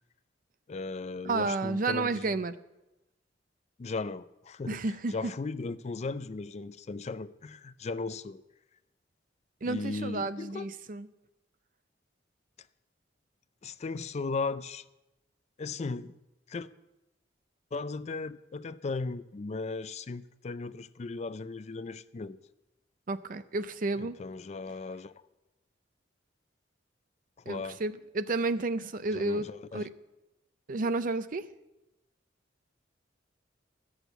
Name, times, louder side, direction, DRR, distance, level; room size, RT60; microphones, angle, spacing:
voice 1, 0.7-2.4 3.8-4.8 5.1-8.4 9.6-10.7 13.6-14.8 15.6-16.1 16.5-16.7 17.7-22.4 24.0-25.2 27.4-27.8 29.1-29.9, left 3 dB, 35° left, 0.4 m, -37 dB
voice 2, 1.2-2.6 4.7-5.3 9.6-11.1 23.1-24.2 27.5-29.5 29.7-29.8 30.7-31.5, right 3 dB, 50° right, 0.5 m, -31 dB
14.0 x 6.3 x 8.0 m
head